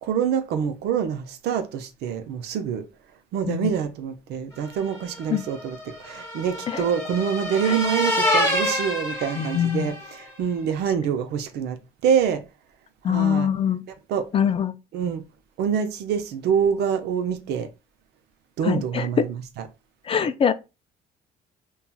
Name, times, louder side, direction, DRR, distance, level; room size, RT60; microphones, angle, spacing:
voice 1, 0.0-2.8 3.3-11.8 12.0-12.4 13.1-13.5 14.1-14.3 14.9-15.2 15.6-17.7 18.6-19.6, right 7 dB, 75° right, 0.6 m, -26 dB
sound 1, 4.8-10.2, left 1 dB, 15° left, 1.2 m, -27 dB
voice 2, 9.4-9.9 13.0-13.8 14.3-14.7 18.6-19.1 20.1-20.5, left 8 dB, 35° left, 0.4 m, -23 dB
5.4 x 2.3 x 2.3 m
cardioid pair, 110°, 17 cm